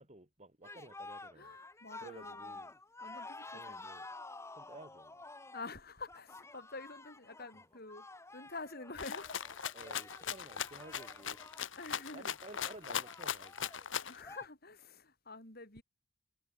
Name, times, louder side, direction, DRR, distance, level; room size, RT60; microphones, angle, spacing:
voice 1, 0.0-1.5 2.0-2.7 3.5-4.1 4.5-5.1 9.7-11.5 12.1-13.7, right 2 dB, 35° right, 3.1 m, -53 dB
sound 1, 0.6-14.5, left 2 dB, 15° left, 2.2 m, -51 dB
voice 2, 1.4-2.5 3.0-3.9 5.5-8.1 8.3-9.4 10.3-10.4 11.8-12.3 14.0-15.8, left 3 dB, 50° left, 5.6 m, -48 dB
Rattle (instrument), 9.0-14.2, left 8 dB, 65° left, 1.3 m, -39 dB
head